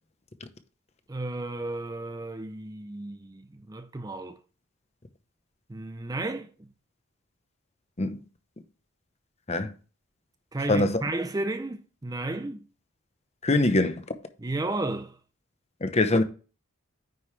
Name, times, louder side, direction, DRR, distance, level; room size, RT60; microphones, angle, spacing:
voice 1, 1.1-4.4 5.7-6.7 10.5-12.6 14.4-15.2, right 2 dB, 15° right, 0.4 m, -33 dB
voice 2, 10.7-11.0 13.4-14.0 15.8-16.2, left 2 dB, 30° left, 0.8 m, -23 dB
9.4 x 5.4 x 3.2 m
head